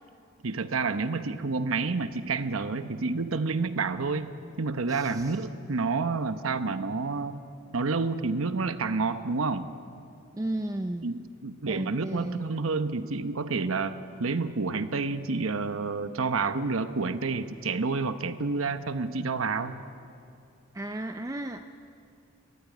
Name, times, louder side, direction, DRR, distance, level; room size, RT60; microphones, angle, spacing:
voice 1, 0.4-4.3 4.6-7.4 7.7-9.7 11.0-19.8, right 4 dB, 85° right, 10 dB, 0.9 m, -29 dB
voice 2, 4.9-5.4 10.3-11.1 11.7-12.5 20.7-21.7, right 1 dB, 15° right, 7 dB, 0.5 m, -34 dB
21.0 x 15.0 x 9.6 m, 2.6 s
head